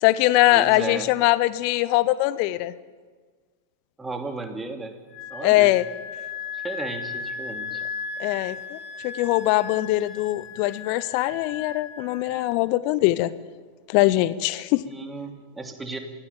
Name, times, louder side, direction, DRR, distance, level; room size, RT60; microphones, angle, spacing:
voice 1, 0.0-2.7 5.4-5.9 8.2-13.3 13.9-14.8, left 17 dB, 45° left, 18 dB, 0.7 m, -22 dB
voice 2, 0.5-1.1 4.0-5.0 5.3-5.7 6.5-7.8 14.9-16.0, right 3 dB, 10° right, 5 dB, 2.8 m, -34 dB
Wind instrument woodwind instrument, 5.1-12.6, left 5 dB, 25° left, 4.8 m, -36 dB
24.0 x 16.5 x 8.8 m, 1.5 s
figure-of-eight pair, 90°, 0 cm